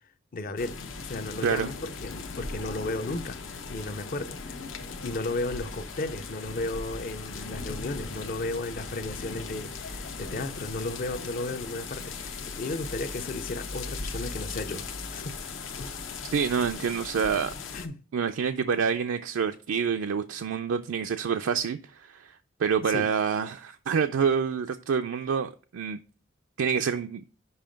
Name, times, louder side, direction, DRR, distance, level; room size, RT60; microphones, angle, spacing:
voice 1, 0.3-15.4 15.8-16.0 17.3-17.4 17.7-18.0 22.8-23.1, left 2 dB, 45° left, 0.5 m, -34 dB
sound 1, 0.6-17.9, left 4 dB, 75° left, 0.8 m, -38 dB
voice 2, 16.3-17.5 18.1-22.3 22.6-26.0 26.6-27.2, right 6 dB, 85° right, 0.4 m, -27 dB
5.6 x 5.0 x 5.1 m
head